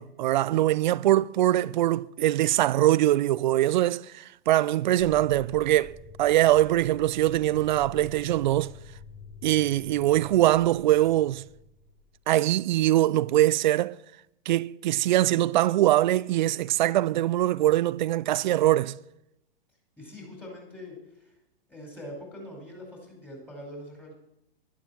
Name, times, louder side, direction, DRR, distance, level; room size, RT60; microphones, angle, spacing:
voice 1, 0.0-8.7 9.4-11.4 12.3-14.0 14.5-19.0, right 14 dB, 50° right, 0.4 m, -23 dB
sound 1, 5.0-12.4, left 4 dB, 35° left, 4.1 m, -48 dB
voice 2, 20.0-21.3 21.7-24.1, left 1 dB, 5° left, 5.0 m, -43 dB
11.5 x 11.0 x 6.0 m
hypercardioid pair, 115°, 30 cm